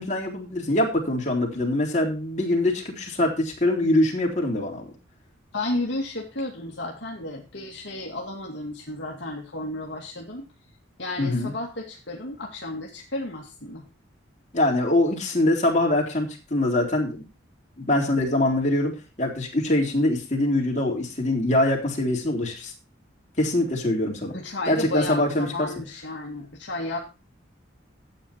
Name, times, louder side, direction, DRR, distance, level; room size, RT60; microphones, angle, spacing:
voice 1, 0.0-4.8 11.2-11.5 14.5-17.2 17.8-18.9 19.2-22.7 23.4-24.3 24.7-25.7, left 1 dB, 35° left, -2 dB, 3.7 m, -23 dB
voice 2, 5.5-10.5 11.0-13.8 24.3-27.0, left 2 dB, 60° left, -1 dB, 2.2 m, -33 dB
12.5 x 8.8 x 4.4 m, 0.31 s
head